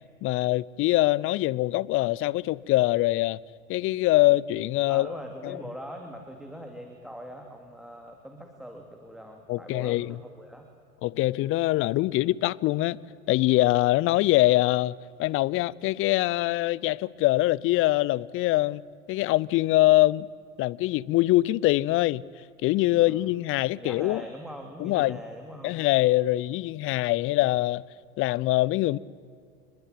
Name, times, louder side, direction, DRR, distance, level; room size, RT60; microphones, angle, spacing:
voice 1, 0.2-3.4 3.7-5.1 5.4-5.6 9.5-10.2 11.0-13.0 13.3-18.8 19.1-20.3 20.6-22.2 22.6-24.2 24.8-25.2 25.6-27.8 28.2-29.0, left 17 dB, 30° left, 0.7 m, -23 dB
voice 2, 4.9-10.7 22.9-23.3 23.7-25.8, equal, ahead, 2.7 m, -42 dB
28.5 x 21.5 x 9.2 m
hypercardioid pair, 95°, 40 cm